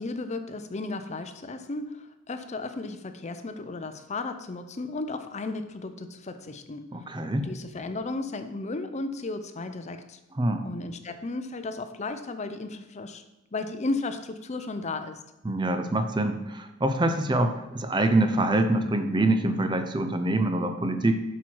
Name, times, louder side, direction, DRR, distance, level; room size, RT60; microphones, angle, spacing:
voice 1, 0.0-6.8 7.4-10.2 10.6-13.2 13.5-15.2, left 3 dB, 35° left, 9 dB, 0.6 m, -34 dB
voice 2, 6.9-7.5 10.3-10.7 15.4-21.1, right 2 dB, 25° right, 7 dB, 0.6 m, -25 dB
8.2 x 6.2 x 4.6 m, 0.99 s
head